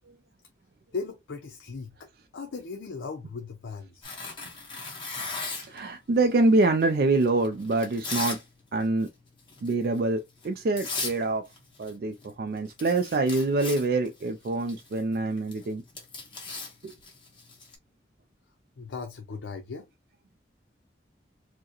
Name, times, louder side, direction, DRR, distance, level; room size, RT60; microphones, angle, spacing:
voice 1, 0.9-2.1 2.3-4.1 18.8-19.9, left 4 dB, 90° left, 0.5 m, -37 dB
Tearing, 4.0-5.8 6.6-8.4 8.7-9.1 9.5-9.7 10.4-10.5 10.8-11.2 11.5-12.0 12.2-12.3 12.6-17.7, left 3 dB, 25° left, 1.2 m, -37 dB
voice 2, 5.6-8.4 8.7-9.1 9.6-11.5 11.8-15.8 16.8-16.9, right 2 dB, 55° right, 0.3 m, -25 dB
4.6 x 2.1 x 2.9 m
head